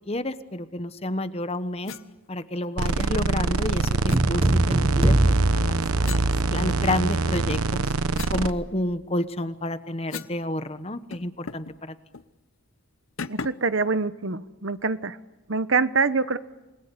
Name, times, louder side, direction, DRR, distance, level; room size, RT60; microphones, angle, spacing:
voice 1, 0.1-2.0 2.3-7.9 8.3-11.9, left 1 dB, 30° left, 12 dB, 1.1 m, -30 dB
sound 1, 1.8-2.1 4.1-4.2 6.0-7.1 7.5-10.4 10.7-10.8 11.1-11.8 12.1-12.3 13.2-13.7, left 5 dB, 70° left, 0.9 m, -39 dB
sound 2, 2.8-8.5, right 3 dB, 90° right, 1.0 m, -24 dB
sound 3, 4.1-6.7, right 1 dB, 25° right, 0.9 m, -23 dB
voice 2, 13.3-15.2 15.5-16.4, right 4 dB, 60° right, 14 dB, 1.0 m, -25 dB
28.0 x 21.5 x 9.9 m, 1.0 s
head